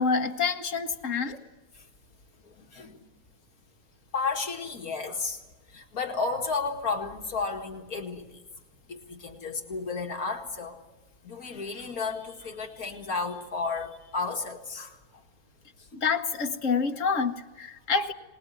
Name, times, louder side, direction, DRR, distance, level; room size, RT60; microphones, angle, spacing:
voice 1, 0.0-1.4 15.9-18.1, left 5 dB, 60° left, 6 dB, 1.6 m, -27 dB
voice 2, 2.6-3.0 4.1-5.4 5.7-8.3 8.9-10.8 11.2-14.9, left 4 dB, 75° left, 3 dB, 2.4 m, -32 dB
24.5 x 20.0 x 9.7 m, 1.2 s
omnidirectional pair, 1.6 m